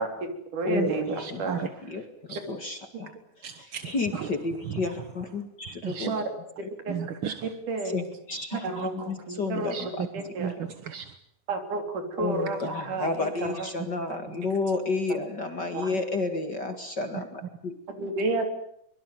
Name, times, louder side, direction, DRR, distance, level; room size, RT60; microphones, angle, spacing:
voice 1, 0.0-1.6 6.0-6.2 6.8-7.0 7.7-8.0 8.5-9.7 10.1-10.5 11.5-13.9 14.3-14.4 15.1-15.2 15.7-15.9 17.9-18.5, right 3 dB, 80° right, 7 dB, 4.7 m, -31 dB
voice 2, 0.6-6.1 6.6-6.7 7.8-10.1 12.2-17.8, left 3 dB, 35° left, 6 dB, 2.4 m, -32 dB
voice 3, 1.2-1.7 2.3-2.4 3.4-4.3 4.7-4.8 5.8-6.1 6.9-7.5 9.6-10.1 10.4-11.1 12.6-12.7 15.9-16.0 17.1-17.2, right 8 dB, 55° right, 10 dB, 1.6 m, -34 dB
24.0 x 23.0 x 9.3 m, 0.74 s
omnidirectional pair, 3.6 m